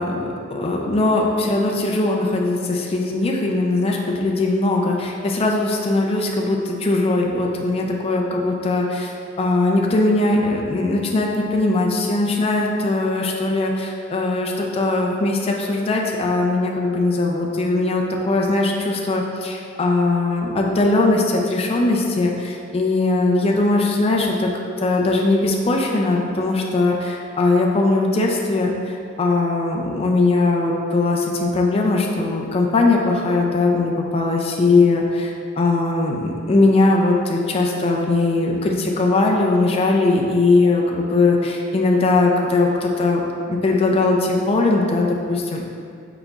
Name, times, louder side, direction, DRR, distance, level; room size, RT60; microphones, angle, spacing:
voice 1, 0.0-24.5 24.8-43.2 43.5-45.6, left 2 dB, 30° left, -1 dB, 0.3 m, -20 dB
5.9 x 3.9 x 2.3 m, 2.4 s
head